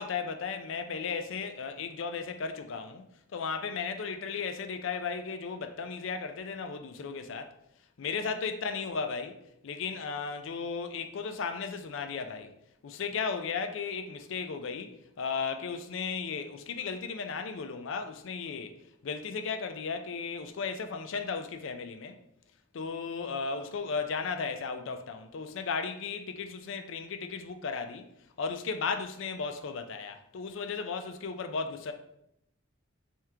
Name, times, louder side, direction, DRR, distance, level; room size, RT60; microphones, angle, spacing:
voice 1, 0.0-3.0 3.3-7.5 8.0-12.5 12.8-18.8 19.0-22.2 22.7-28.1 28.4-31.9, left 5 dB, 65° left, 0.4 m, -35 dB
3.5 x 3.0 x 3.3 m
head